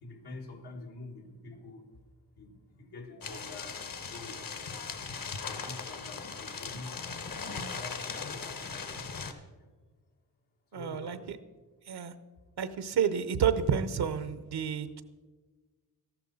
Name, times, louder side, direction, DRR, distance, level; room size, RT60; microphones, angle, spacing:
voice 1, 0.0-2.1 2.4-5.0 5.4-9.7 10.7-11.3, left 2 dB, 85° left, 1 dB, 1.7 m, -47 dB
sound 1, 3.2-9.3, left 5 dB, 60° left, 1.1 m, -39 dB
voice 2, 10.7-11.4 11.9-12.1 12.6-15.0, right 7 dB, 80° right, 13 dB, 0.8 m, -30 dB
13.5 x 11.5 x 4.0 m, 1.4 s
cardioid pair, 80°, 38 cm